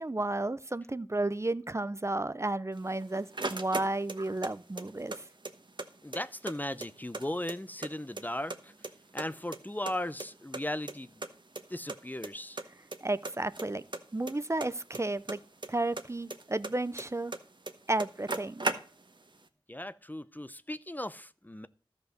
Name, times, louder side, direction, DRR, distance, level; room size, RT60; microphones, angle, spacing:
voice 1, 0.0-5.2 13.0-13.8 14.1-15.4 15.7-17.3 17.9-18.7, right 2 dB, 30° right, 0.5 m, -32 dB
sound 1, 2.8-4.5 4.8-5.9 6.1-6.2 6.5-7.9 8.2-8.9 9.2-10.6 10.9-11.0 11.2-11.3 11.6-11.7 11.9-12.3 12.6-13.0 13.2-15.7 16.0-17.4 17.7-17.8 18.0-19.2, right 2 dB, 60° right, 1.1 m, -36 dB
voice 2, 6.0-8.7 9.1-11.2 11.7-12.6 19.7-21.7, left 1 dB, 20° left, 0.5 m, -37 dB
13.0 x 5.3 x 6.5 m
wide cardioid pair, 45°, 9 cm